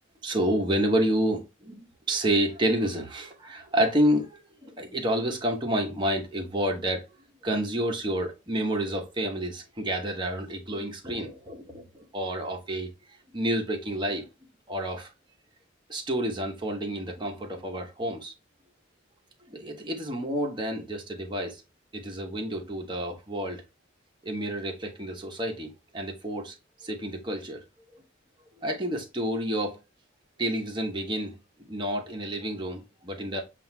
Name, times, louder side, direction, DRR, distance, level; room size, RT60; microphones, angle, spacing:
voice 1, 0.2-1.8 2.1-7.0 7.4-12.9 13.3-14.2 14.7-15.1 15.9-18.3 19.5-21.6 21.9-23.6 24.2-26.5 26.8-27.6 28.6-29.8 30.4-31.3 31.7-33.4, right 1 dB, 25° right, 1.0 m, -29 dB
7.6 x 2.5 x 2.2 m
head